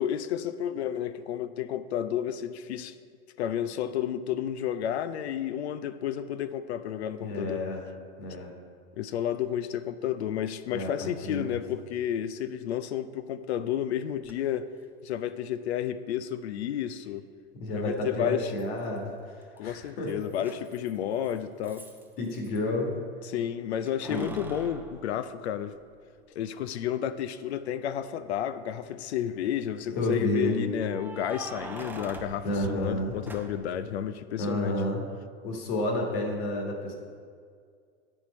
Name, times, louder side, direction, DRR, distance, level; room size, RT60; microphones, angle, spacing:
voice 1, 0.0-2.9 3.4-7.6 9.0-14.7 15.0-17.2 17.7-18.5 19.6-21.9 23.3-25.8 26.4-34.7, left 10 dB, 85° left, 13 dB, 0.5 m, -31 dB
voice 2, 7.2-7.9 8.2-8.5 10.7-11.6 17.6-20.2 22.2-23.0 24.1-24.4 29.9-30.5 32.4-33.2 34.4-35.0 35.4-36.9, left 1 dB, 55° left, 1 dB, 1.7 m, -30 dB
Keys jangling, 14.2-14.3 16.2-16.3 18.6-19.1 19.4-22.6 23.9-26.0 26.5-26.6 28.4-28.9 30.9-33.8, right 2 dB, 5° right, 0.5 m, -44 dB
8.8 x 4.5 x 4.2 m, 2.1 s
hypercardioid pair, 105°, 32 cm